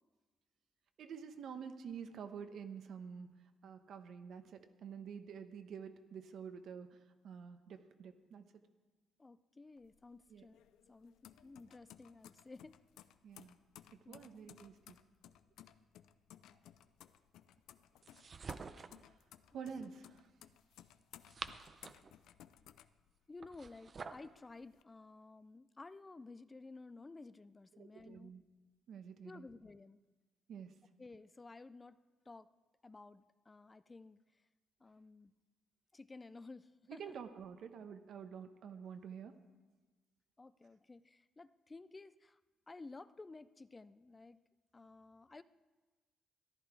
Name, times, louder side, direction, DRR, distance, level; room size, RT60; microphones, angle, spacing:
voice 1, 1.0-3.3 3.6-8.4 10.3-10.5 13.2-13.6 13.9-15.0 19.1-19.2 19.5-20.3 27.7-28.4 28.9-29.5 30.5-30.7 36.9-39.3, right 7 dB, 70° right, 8 dB, 1.0 m, -49 dB
voice 2, 9.2-12.8 14.0-14.4 19.5-19.6 23.3-28.3 29.2-30.0 31.0-32.0 32.3-32.5 32.8-34.4 34.8-35.3 35.9-37.1 40.4-42.4 42.7-44.4 44.7-45.4, left 3 dB, 25° left, 15 dB, 0.4 m, -54 dB
sound 1, 9.8-23.6 24.0-24.8, left 11 dB, 85° left, 0.4 m, -60 dB
sound 2, 18.0-19.0 21.0-22.1 23.4-24.3, right 5 dB, 40° right, 0.6 m, -48 dB
14.0 x 11.0 x 4.7 m, 1.3 s
cardioid pair, 90°, 0 cm